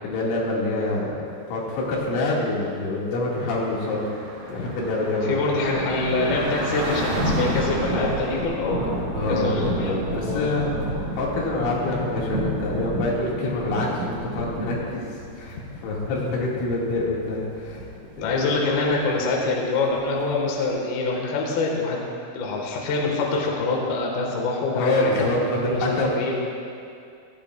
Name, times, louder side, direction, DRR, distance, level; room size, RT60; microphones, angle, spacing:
voice 1, 0.0-1.2 1.5-4.1 4.5-5.4 9.1-10.7 11.1-17.8 18.2-18.5 24.7-26.1, left 2 dB, 75° left, -5 dB, 4.7 m, -26 dB
Car / Traffic noise roadway noise, 3.4-8.4, right 1 dB, 45° right, 4.5 m, -33 dB
sound 1, 4.7-20.7, right 1 dB, 75° right, 1.6 m, -31 dB
voice 2, 5.0-9.0 9.3-10.7 18.2-22.0 22.3-25.4 25.6-26.3, left 3 dB, 60° left, -2 dB, 2.9 m, -25 dB
18.5 x 15.5 x 2.4 m, 2.4 s
omnidirectional pair, 5.9 m